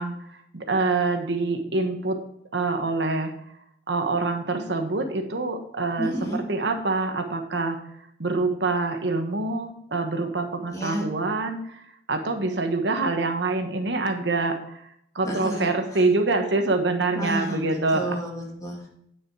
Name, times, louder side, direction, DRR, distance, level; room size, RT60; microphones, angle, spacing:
voice 1, 0.0-2.2 2.5-3.3 3.9-7.8 8.2-11.8 12.1-18.1, right 3 dB, 80° right, 5 dB, 1.2 m, -26 dB
voice 2, 6.0-6.4 10.7-11.1 15.2-16.0 17.1-18.9, right 1 dB, 20° left, -2 dB, 2.6 m, -31 dB
9.7 x 6.2 x 4.8 m, 0.71 s
head